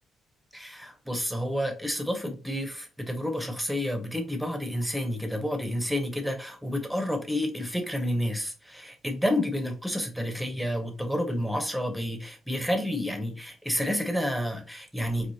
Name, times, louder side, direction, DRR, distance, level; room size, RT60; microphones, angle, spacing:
voice 1, 0.5-15.3, equal, 5° right, 5 dB, 1.0 m, -30 dB
4.8 x 2.3 x 2.8 m, 0.36 s
cardioid pair, 90°, 0 cm